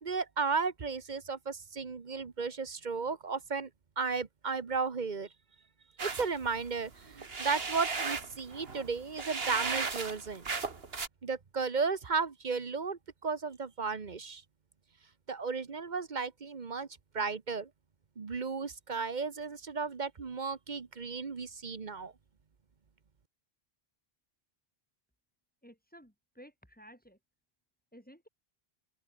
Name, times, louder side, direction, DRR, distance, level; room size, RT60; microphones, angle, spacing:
voice 1, 0.0-3.7 4.0-5.3 6.0-10.4 11.2-14.4 15.3-16.9 17.1-17.7 18.2-22.1, right 4 dB, 45° right, 1.2 m, -34 dB
sound 1, 6.0-11.1, right 4 dB, 65° right, 2.1 m, -36 dB
voice 2, 25.6-27.2 27.9-28.3, equal, 10° left, 5.9 m, -55 dB
open air
omnidirectional pair, 1.1 m